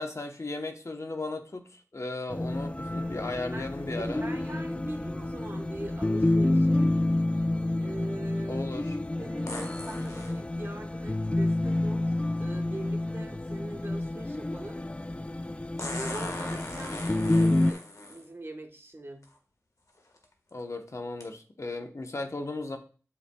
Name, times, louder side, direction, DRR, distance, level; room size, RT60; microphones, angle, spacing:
voice 1, 0.0-4.3 8.5-9.0 20.5-22.8, left 2 dB, 65° left, 5 dB, 0.9 m, -36 dB
sound 1, 2.3-17.7, left 1 dB, 20° left, 0.3 m, -29 dB
voice 2, 4.0-6.9 7.8-8.7 9.2-14.8 15.9-19.2, right 2 dB, 50° right, 4 dB, 1.2 m, -42 dB
sound 2, 9.5-10.4 12.4-12.5 15.8-18.3 19.2-19.3 20.0-20.2 21.2-21.3, left 2 dB, 80° left, 1.4 m, -39 dB
8.4 x 7.2 x 2.3 m, 0.38 s
wide cardioid pair, 60°, 5 cm